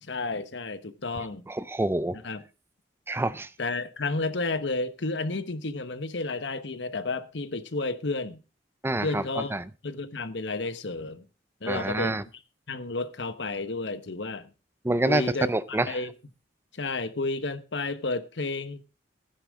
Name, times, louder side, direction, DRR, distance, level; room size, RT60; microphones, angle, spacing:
voice 1, 0.0-1.5 2.2-2.4 3.6-8.4 9.0-9.5 9.8-11.3 11.6-12.2 12.7-14.5 15.1-16.1 16.7-18.8, left 3 dB, 70° left, 1.1 m, -31 dB
voice 2, 1.5-2.2 3.1-3.5 8.8-9.2 9.5-9.6 11.7-12.2 14.8-16.0, right 1 dB, 15° right, 0.5 m, -27 dB
15.0 x 10.0 x 3.6 m
head